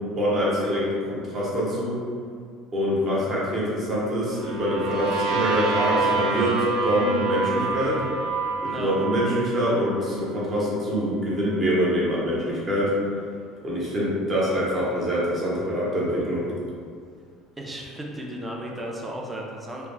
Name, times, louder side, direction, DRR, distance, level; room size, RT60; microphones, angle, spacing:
voice 1, 0.1-2.0 2.7-8.0 8.6-12.9 13.6-16.5, equal, 30° right, -6 dB, 0.8 m, -25 dB
sound 1, 4.3-10.1, right 3 dB, 80° right, 0.5 m, -27 dB
voice 2, 8.7-9.0 17.6-19.9, right 1 dB, 15° right, -1 dB, 0.4 m, -35 dB
2.3 x 2.1 x 3.1 m, 2.2 s
cardioid pair, 130°, 0 cm